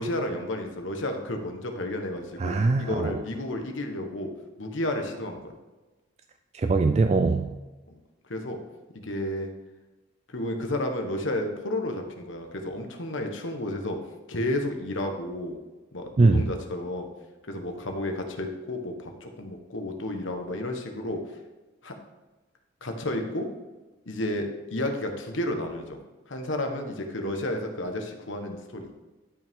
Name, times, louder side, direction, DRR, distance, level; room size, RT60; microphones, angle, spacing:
voice 1, 0.0-4.3 4.6-5.5 7.9-8.0 8.3-8.6 8.9-9.5 10.3-14.0 14.3-15.6 15.9-17.1 17.5-21.2 21.8-21.9 22.8-23.5 24.1-26.0 26.3-28.9, left 1 dB, 80° left, 4 dB, 1.2 m, -31 dB
voice 2, 2.4-3.2 6.5-7.6 16.2-16.4, right 3 dB, 35° right, 8 dB, 0.3 m, -22 dB
12.0 x 5.5 x 3.6 m, 1.2 s
head